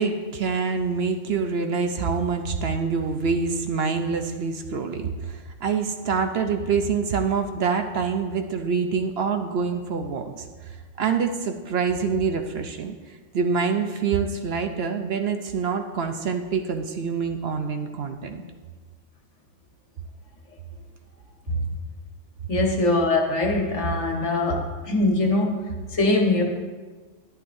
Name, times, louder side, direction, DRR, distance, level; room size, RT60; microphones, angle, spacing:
voice 1, 0.0-10.4 11.0-18.4, right 5 dB, 60° right, 6 dB, 0.8 m, -26 dB
voice 2, 22.5-25.6 25.9-26.4, left 2 dB, 70° left, 1 dB, 1.6 m, -22 dB
11.5 x 10.0 x 2.7 m, 1.4 s
omnidirectional pair, 1.3 m